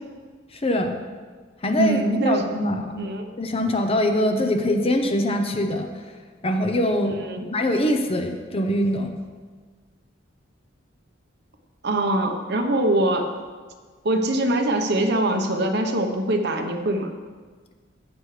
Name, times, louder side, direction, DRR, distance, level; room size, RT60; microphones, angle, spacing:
voice 1, 0.5-1.0 1.6-2.9 3.4-5.9 6.4-7.2 7.5-9.1, left 1 dB, 30° left, 5 dB, 0.8 m, -23 dB
voice 2, 1.8-2.4 3.0-3.3 7.2-7.5 11.8-13.3 14.0-17.1, right 1 dB, 60° right, 4 dB, 1.0 m, -23 dB
14.5 x 8.2 x 3.3 m, 1.5 s
head